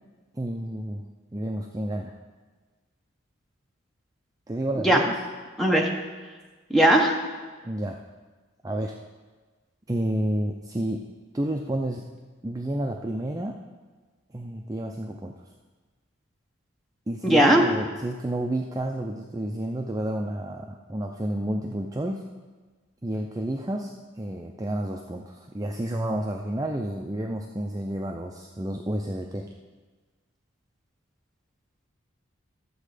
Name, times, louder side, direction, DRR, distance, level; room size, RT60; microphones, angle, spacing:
voice 1, 0.3-1.1 1.3-2.1 4.5-5.2 7.6-8.0 8.6-8.9 9.9-11.0 11.3-12.1 12.4-13.6 14.3-15.3 17.1-22.2 23.0-29.5, right 1 dB, 15° right, 1 dB, 0.4 m, -30 dB
voice 2, 5.6-5.9 6.7-7.1 17.2-17.6, right 1 dB, ahead, 0 dB, 1.0 m, -18 dB
12.5 x 7.3 x 5.0 m, 1.3 s
head